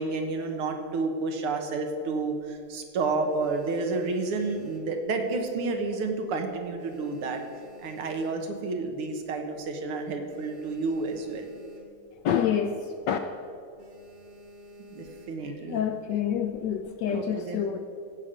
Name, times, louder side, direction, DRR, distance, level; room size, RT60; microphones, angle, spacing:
voice 1, 0.0-7.4 7.8-11.5 14.8-15.8 17.1-17.6, right 3 dB, 85° right, 4 dB, 2.1 m, -30 dB
sound 1, 3.3-5.6 5.9-6.2 6.5-8.8 9.2-9.3 9.5-9.6 10.0-12.2 12.5-12.7 13.1-13.3 13.8-15.6 16.3-16.9, left 1 dB, 65° right, 2.5 m, -50 dB
voice 2, 12.2-13.2 15.4-17.8, left 8 dB, 75° left, 7 dB, 1.0 m, -28 dB
15.5 x 5.1 x 7.4 m, 2.5 s
omnidirectional pair, 2.3 m